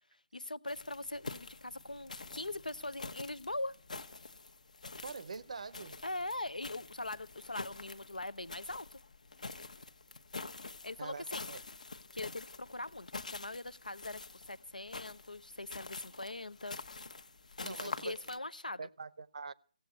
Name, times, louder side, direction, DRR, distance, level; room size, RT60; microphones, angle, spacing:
voice 1, 0.3-3.8 6.0-9.0 10.8-11.5 12.1-16.8 17.6-18.8, left 2 dB, 80° left, 0.8 m, -41 dB
sound 1, 0.7-18.4, left 3 dB, 65° left, 1.1 m, -47 dB
voice 2, 5.0-6.0 11.0-11.6 17.6-18.2 18.8-19.5, right 4 dB, 55° right, 0.7 m, -44 dB
16.5 x 7.8 x 9.4 m
figure-of-eight pair, 145°, 4 cm